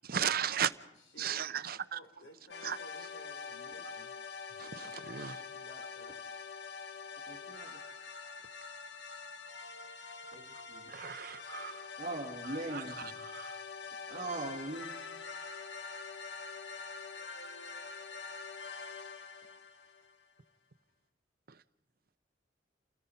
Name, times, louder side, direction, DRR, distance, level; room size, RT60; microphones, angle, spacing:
voice 1, 0.1-0.7 1.2-2.0 2.6-2.8 4.6-5.4 10.9-11.9 12.7-12.8 13.2-13.6, right 8 dB, 50° right, 0.8 m, -35 dB
voice 2, 1.0-4.1 5.5-6.2, equal, 90° left, 3.7 m, -56 dB
sound 1, 2.5-20.3, left 5 dB, 65° left, 1.3 m, -45 dB
voice 3, 7.3-7.8 10.3-10.8 12.0-13.1 14.1-14.9, right 2 dB, 35° right, 2.1 m, -40 dB
29.5 x 17.5 x 5.6 m
head